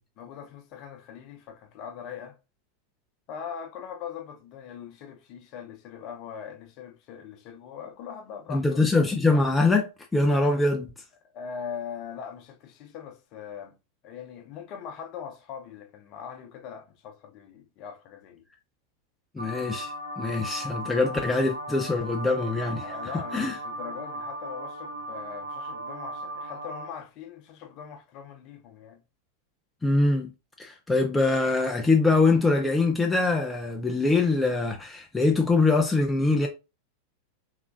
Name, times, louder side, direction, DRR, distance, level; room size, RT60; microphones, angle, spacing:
voice 1, 0.2-2.4 3.3-8.9 11.3-13.8 14.0-18.4 22.7-29.0, left 7 dB, 40° left, 0.8 m, -41 dB
voice 2, 8.5-10.9 19.3-22.9 23.1-23.6 29.8-30.3 30.6-36.5, left 3 dB, 10° left, 0.4 m, -23 dB
sound 1, 19.4-26.9, right 1 dB, 85° right, 0.6 m, -37 dB
3.5 x 2.9 x 2.5 m
figure-of-eight pair, 90°, 0 cm